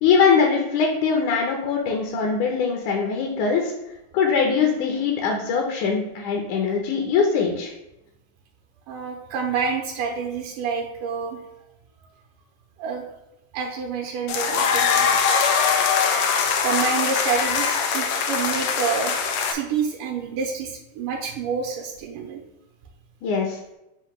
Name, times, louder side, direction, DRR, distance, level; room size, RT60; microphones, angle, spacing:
voice 1, 0.0-3.7 4.1-7.7 23.2-23.6, left 5 dB, 70° left, 1 dB, 2.1 m, -22 dB
voice 2, 8.9-11.4 12.8-13.0 13.5-15.1 16.3-22.4, right 5 dB, 75° right, 1 dB, 2.2 m, -28 dB
sound 1, 14.3-19.5, left 6 dB, 85° left, 1.5 m, -22 dB
8.0 x 2.8 x 5.9 m, 0.88 s
omnidirectional pair, 4.0 m